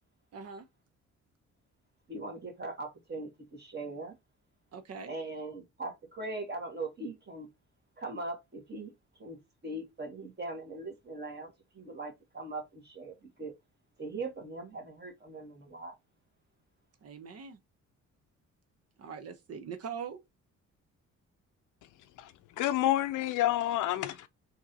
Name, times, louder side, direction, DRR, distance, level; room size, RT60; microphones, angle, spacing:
voice 1, 0.3-0.7 4.7-5.1 17.0-17.6 19.0-20.2, right 6 dB, 55° right, 0.8 m, -42 dB
voice 2, 2.1-4.2 5.1-7.5 8.0-8.9 9.2-9.4 9.6-13.1 13.4-13.5 14.0-15.9, right 2 dB, 35° right, 2.0 m, -40 dB
voice 3, 22.2-24.3, left 14 dB, 80° left, 0.6 m, -29 dB
3.6 x 2.9 x 4.0 m
cardioid pair, 90°, 30 cm